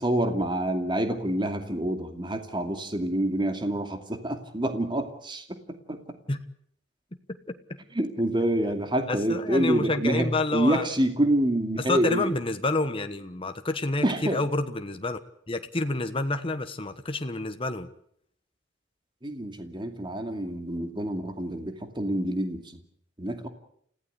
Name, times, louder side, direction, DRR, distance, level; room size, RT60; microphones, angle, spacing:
voice 1, 0.0-5.6 5.9-6.0 7.9-12.3 14.0-14.4 19.2-22.6 23.2-23.5, right 1 dB, 25° right, 6 dB, 2.4 m, -27 dB
voice 2, 9.1-10.9 11.9-15.2 15.5-17.9, left 2 dB, 30° left, 7 dB, 1.3 m, -28 dB
29.5 x 16.0 x 8.2 m, 0.67 s
head